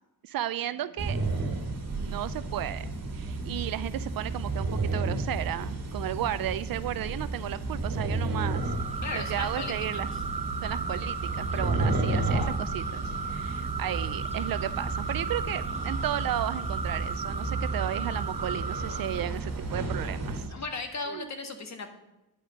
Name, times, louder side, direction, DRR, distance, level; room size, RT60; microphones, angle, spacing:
voice 1, 0.2-1.2 2.0-8.7 9.1-10.1 10.6-20.4 21.1-21.3, right 12 dB, 55° right, 15 dB, 0.5 m, -34 dB
sound 1, 1.0-20.5, right 3 dB, 40° right, 2.0 m, -32 dB
sound 2, 8.4-19.3, right 4 dB, 15° right, 0.7 m, -36 dB
voice 2, 9.0-10.1 20.5-21.9, left 3 dB, 40° left, 6 dB, 1.7 m, -36 dB
10.0 x 5.1 x 7.6 m, 0.95 s
cardioid pair, 90°, 42 cm